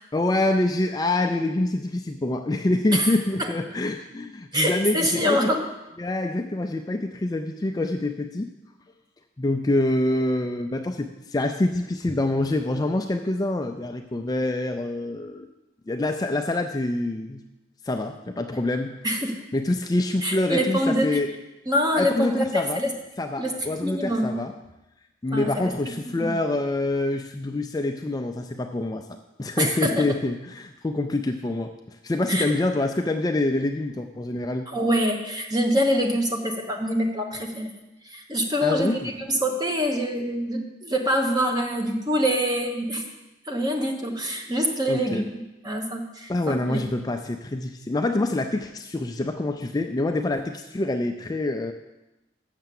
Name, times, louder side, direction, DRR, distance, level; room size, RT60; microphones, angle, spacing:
voice 1, 0.1-5.5 6.0-8.5 9.4-15.5 15.9-17.4 17.8-19.0 19.5-21.3 22.0-22.8 23.2-24.5 25.2-29.1 29.4-34.7 38.6-39.1 44.9-45.2 46.3-51.7, left 2 dB, 20° left, 5 dB, 0.4 m, -26 dB
voice 2, 2.9-3.5 4.5-5.7 19.0-19.4 20.2-21.2 21.7-22.9 23.4-23.6 23.8-24.4 25.3-26.3 29.6-30.1 32.3-32.5 34.7-37.7 38.0-43.1 43.4-45.3 45.6-46.8, equal, 20° right, 3 dB, 1.1 m, -25 dB
6.8 x 6.7 x 7.6 m, 0.98 s
head